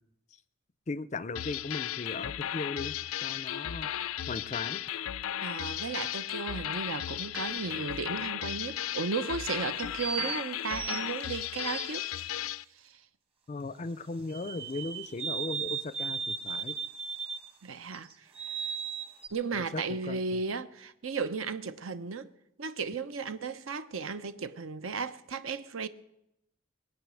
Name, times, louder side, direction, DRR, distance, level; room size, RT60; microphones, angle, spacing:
voice 1, 0.9-2.9 3.2-4.8 13.5-16.8 19.5-20.4, left 3 dB, 35° left, 0.4 m, -37 dB
sound 1, 1.4-12.6, left 11 dB, 90° left, 0.4 m, -35 dB
voice 2, 5.4-12.1 12.8-13.0 17.6-18.3 19.3-22.3 22.6-25.9, right 5 dB, 75° right, 0.8 m, -35 dB
sound 2, 7.4-8.3 9.8-12.2 14.3-17.5 17.9-19.3, right 6 dB, 30° right, 1.3 m, -37 dB
21.5 x 8.5 x 6.3 m
head